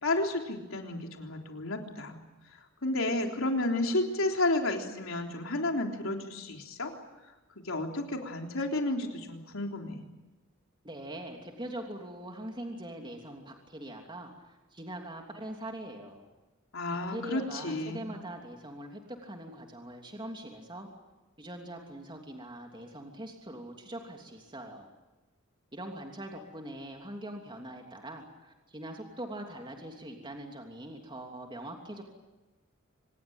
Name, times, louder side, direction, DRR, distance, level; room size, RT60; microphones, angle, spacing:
voice 1, 0.0-2.2 2.8-6.9 7.6-10.0 16.7-18.1, left 2 dB, 85° left, 2 dB, 3.7 m, -31 dB
voice 2, 10.8-16.2 16.9-20.9 21.4-24.9 25.7-32.0, right 1 dB, 25° right, 2 dB, 3.1 m, -42 dB
25.5 x 20.5 x 9.0 m, 1.1 s
head